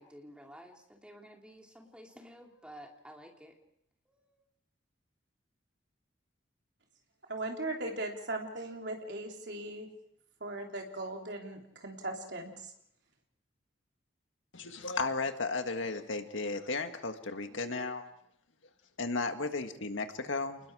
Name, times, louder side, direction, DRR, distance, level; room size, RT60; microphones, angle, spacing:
voice 1, 0.0-3.6 4.1-4.4, equal, 5° right, 1 dB, 2.8 m, -52 dB
voice 2, 7.3-9.9 10.4-12.7, right 2 dB, 65° right, 1 dB, 3.6 m, -38 dB
voice 3, 14.5-18.1 19.0-20.6, left 3 dB, 85° left, 7 dB, 1.8 m, -34 dB
29.0 x 20.5 x 4.9 m, 0.73 s
head